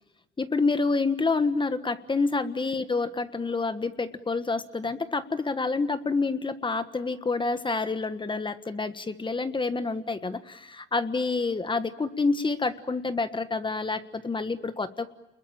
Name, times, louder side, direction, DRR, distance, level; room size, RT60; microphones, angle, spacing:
voice 1, 0.4-15.1, left 3 dB, 25° left, 11 dB, 1.5 m, -28 dB
29.0 x 21.5 x 8.9 m, 0.97 s
cardioid pair, 90°, 20 cm